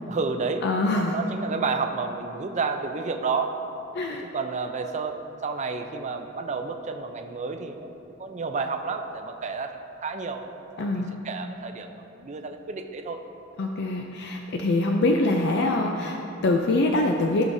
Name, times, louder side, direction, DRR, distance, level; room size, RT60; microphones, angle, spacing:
voice 1, 0.1-0.7 0.9-3.6 4.2-7.9 8.2-11.9 12.1-13.2, right 4 dB, 35° right, 6 dB, 0.5 m, -31 dB
voice 2, 0.6-1.2 3.9-4.2 10.8-11.1 13.6-17.5, left 2 dB, 60° left, 2 dB, 0.5 m, -24 dB
15.0 x 6.2 x 2.7 m, 2.8 s
head